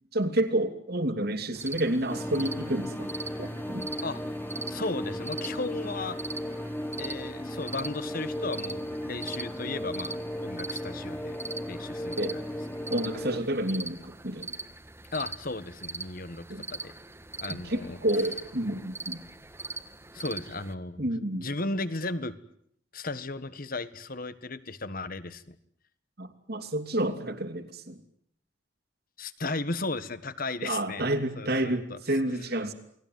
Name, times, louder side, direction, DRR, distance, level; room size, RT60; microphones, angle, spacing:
voice 1, 0.1-3.1 3.4-3.8 12.2-12.4 12.9-14.5 16.5-16.6 17.5-19.2 21.0-21.5 26.2-28.0 30.6-32.7, right 1 dB, 60° right, 8 dB, 2.9 m, -29 dB
sound 1, 1.6-20.7, right 3 dB, 15° right, 1.4 m, -42 dB
sound 2, 2.1-13.4, equal, 10° left, 1.4 m, -36 dB
voice 2, 4.7-6.2 7.0-11.4 11.7-12.2 15.1-16.9 17.4-18.0 20.1-21.1 21.4-22.3 22.9-25.5 29.2-31.1 31.4-32.0, left 3 dB, 50° left, 13 dB, 1.6 m, -35 dB
29.0 x 19.5 x 9.5 m, 0.71 s
head